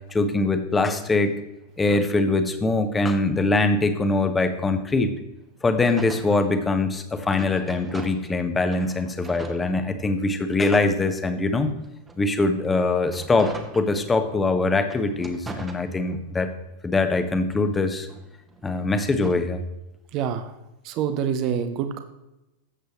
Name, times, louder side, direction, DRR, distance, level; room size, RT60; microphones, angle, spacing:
voice 1, 0.1-1.3 1.8-5.1 5.6-11.7 12.2-16.5 16.8-18.1 18.6-19.6, left 3 dB, 15° left, 8 dB, 1.1 m, -23 dB
sound 1, 5.8-8.4 8.7-10.4 10.9-14.4 14.8-16.5 16.9-19.5, right 2 dB, 15° right, 1.3 m, -42 dB
voice 2, 20.1-20.5 20.8-22.0, right 8 dB, 40° right, 9 dB, 0.9 m, -26 dB
13.5 x 8.1 x 3.0 m, 0.94 s
figure-of-eight pair, 90°, 0 cm